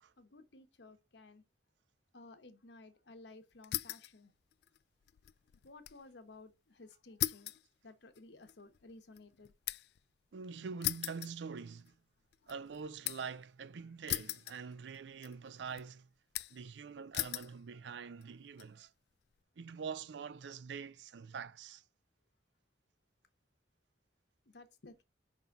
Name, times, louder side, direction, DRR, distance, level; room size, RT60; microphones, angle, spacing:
voice 1, 0.2-1.4 2.1-4.3 5.6-7.6 7.8-9.5 24.5-25.0, left 3 dB, 85° left, 1.0 m, -56 dB
sound 1, 3.6-4.2 4.5-6.0 6.3-6.4 7.2-10.0 10.8-12.0 12.3-13.4 14.1-15.0 15.2-15.8 16.3-16.7 17.1-17.5 18.2-18.6, left 15 dB, 65° left, 0.3 m, -39 dB
voice 2, 10.3-11.9 12.5-16.1 16.5-18.9 19.6-21.8, right 5 dB, 90° right, 0.4 m, -45 dB
5.4 x 3.9 x 5.9 m
head